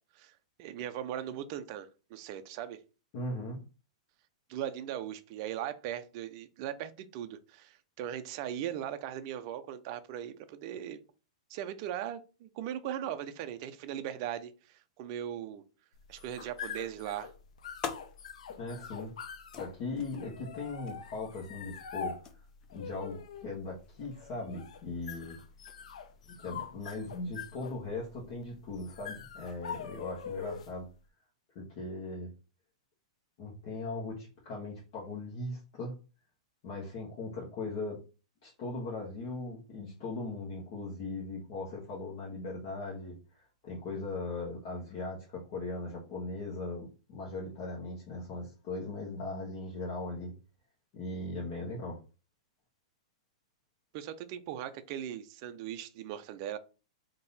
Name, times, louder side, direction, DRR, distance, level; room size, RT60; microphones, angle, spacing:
voice 1, 0.6-2.8 4.5-11.0 11.5-15.6 16.1-17.3 53.9-56.6, right 10 dB, 35° right, 0.5 m, -39 dB
voice 2, 3.1-3.6 18.6-19.1 19.6-22.4 22.7-25.4 26.2-30.9 31.5-32.3 33.4-35.9 36.6-38.0 38.4-43.2 43.6-50.3 50.9-52.0, left 2 dB, 40° left, 1.3 m, -39 dB
sound 1, 16.0-30.9, left 6 dB, 85° left, 0.6 m, -44 dB
sound 2, 17.4-27.5, left 6 dB, 20° left, 0.6 m, -49 dB
3.7 x 2.8 x 4.1 m
supercardioid pair, 165°, 3 cm